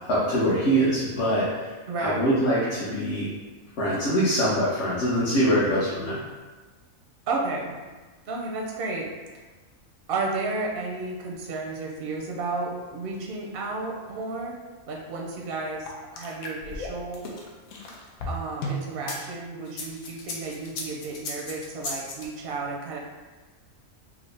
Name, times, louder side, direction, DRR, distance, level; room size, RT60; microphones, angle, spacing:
voice 1, 0.1-1.7 2.0-3.3 3.8-6.2, equal, 55° left, -10 dB, 1.2 m, -23 dB
voice 2, 1.9-2.3 7.3-7.8 8.3-9.1 10.1-14.6 14.9-15.8 16.1-17.2 18.3-23.0, right 3 dB, 60° right, -1 dB, 0.6 m, -32 dB
sound 1, 15.9-19.2 19.7-22.2, left 1 dB, 85° left, 1.1 m, -34 dB
4.8 x 2.1 x 3.2 m, 1.3 s
omnidirectional pair, 1.4 m